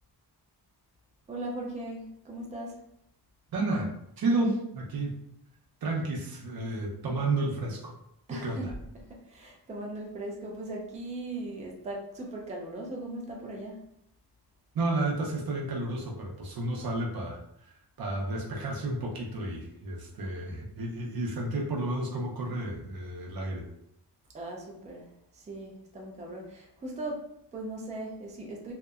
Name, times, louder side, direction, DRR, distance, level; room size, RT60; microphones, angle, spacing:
voice 1, 1.3-2.8 8.3-8.7 8.9-13.8 24.3-28.7, right 1 dB, 20° right, 0 dB, 0.3 m, -39 dB
voice 2, 3.5-3.9 4.2-5.1 5.8-7.9 8.3-8.7 14.7-23.6, right 2 dB, 60° right, -1 dB, 0.6 m, -31 dB
2.7 x 2.1 x 2.3 m, 0.76 s
wide cardioid pair, 155°, 41 cm